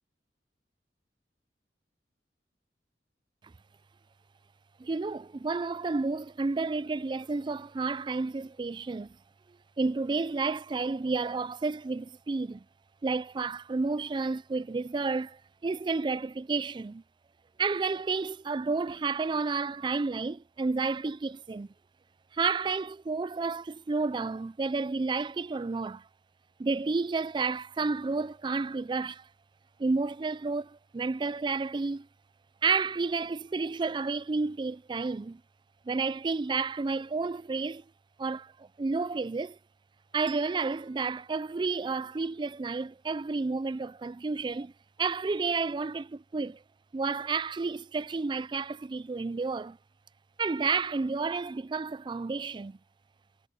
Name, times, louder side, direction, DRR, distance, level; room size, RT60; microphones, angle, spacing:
voice 1, 4.8-9.2 9.8-12.6 13.0-17.0 17.6-21.7 22.3-26.1 26.6-29.3 29.8-32.1 32.6-35.4 35.9-37.8 38.2-39.6 40.1-44.7 45.0-46.6 46.9-49.8 50.4-52.8, right 4 dB, 25° right, 0.4 m, -31 dB
Bell, 40.2-43.3, right 16 dB, 75° right, 3.5 m, -58 dB
head